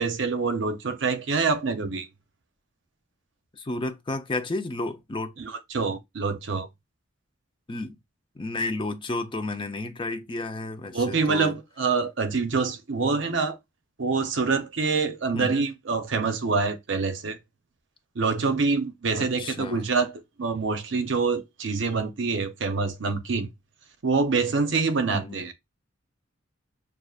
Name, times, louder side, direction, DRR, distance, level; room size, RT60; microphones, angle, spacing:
voice 1, 0.0-2.1 5.4-6.7 10.9-13.6 14.0-17.4 18.2-23.5 24.0-25.5, right 4 dB, 60° right, 0.7 m, -26 dB
voice 2, 3.5-5.3 7.7-8.0 8.4-11.5 15.3-15.6 19.1-19.8 25.1-25.4, left 2 dB, 25° left, 0.5 m, -32 dB
6.4 x 2.4 x 2.4 m
head